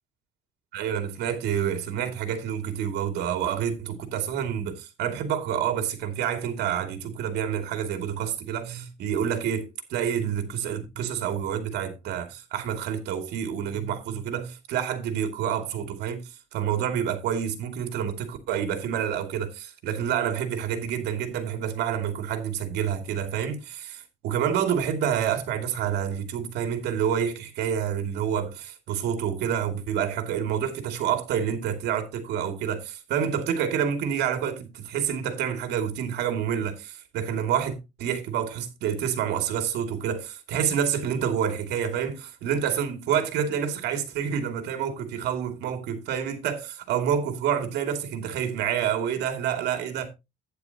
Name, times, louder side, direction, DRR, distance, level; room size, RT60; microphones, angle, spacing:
voice 1, 0.7-50.1, right 8 dB, 80° right, 2.7 m, -28 dB
11.5 x 9.9 x 2.9 m
cardioid pair, 110°, 17 cm